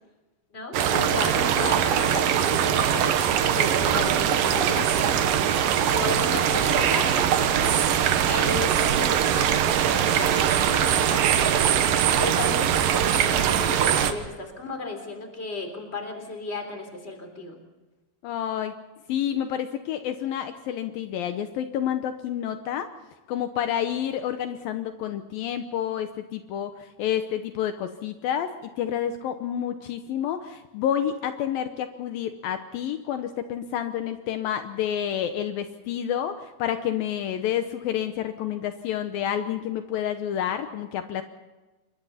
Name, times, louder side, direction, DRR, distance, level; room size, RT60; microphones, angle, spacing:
voice 1, 0.5-3.2 3.4-7.8 8.3-11.7 12.2-17.6, left 3 dB, 15° left, 5 dB, 3.5 m, -34 dB
sound 1, 0.7-14.1, right 9 dB, 70° right, 2.6 m, -22 dB
voice 2, 18.2-18.7 19.1-22.9 23.3-41.2, left 10 dB, 75° left, 8 dB, 2.6 m, -29 dB
28.0 x 23.0 x 4.3 m, 1.1 s
omnidirectional pair, 4.3 m